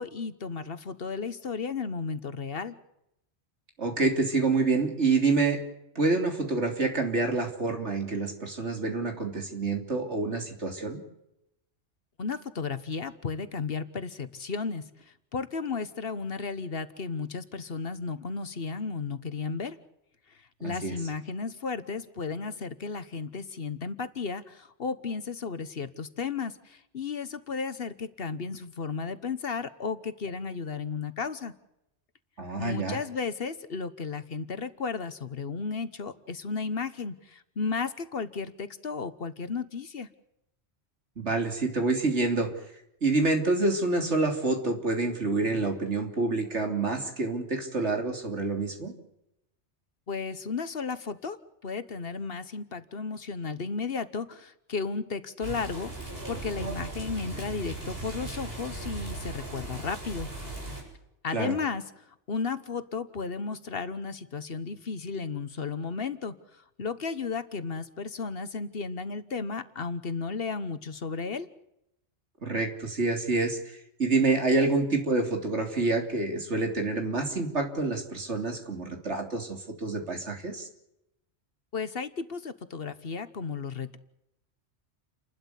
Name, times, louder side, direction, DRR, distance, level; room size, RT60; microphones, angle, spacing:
voice 1, 0.0-2.8 12.2-19.8 20.4-31.5 32.6-40.1 50.1-51.4 51.6-55.9 56.3-60.3 61.2-71.5 81.7-84.0, left 5 dB, 55° left, 13 dB, 1.3 m, -34 dB
voice 2, 3.8-5.6 6.0-11.0 20.6-21.0 32.4-33.0 41.2-42.5 43.0-48.9 61.3-61.5 72.4-80.7, right 3 dB, 80° right, 4 dB, 3.7 m, -27 dB
sound 1, 55.4-60.8, right 2 dB, 55° right, 8.2 m, -38 dB
29.5 x 12.5 x 8.2 m, 0.84 s
omnidirectional pair, 1.2 m